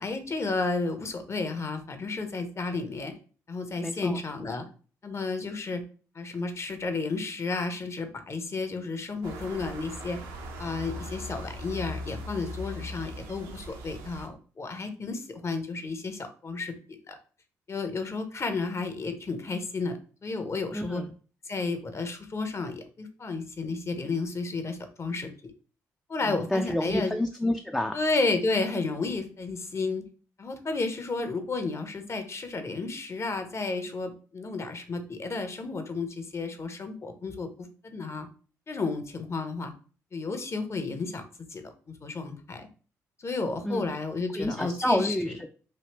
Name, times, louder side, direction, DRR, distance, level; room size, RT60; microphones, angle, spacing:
voice 1, 0.0-3.1 3.5-4.7 5.0-5.8 6.1-10.2 10.6-17.2 17.7-21.0 21.5-25.5 26.1-27.1 27.9-30.0 30.4-38.3 38.7-39.7 40.1-41.2 41.5-42.7 43.2-45.3, left 3 dB, 30° left, 7 dB, 0.7 m, -32 dB
voice 2, 3.8-4.2 20.7-21.1 26.3-28.0 43.6-43.9 44.3-45.5, left 1 dB, 5° left, 4 dB, 0.3 m, -29 dB
sound 1, 9.2-14.3, equal, 65° right, 0.5 m, -39 dB
3.1 x 2.7 x 2.9 m, 0.40 s
figure-of-eight pair, 40°, 9 cm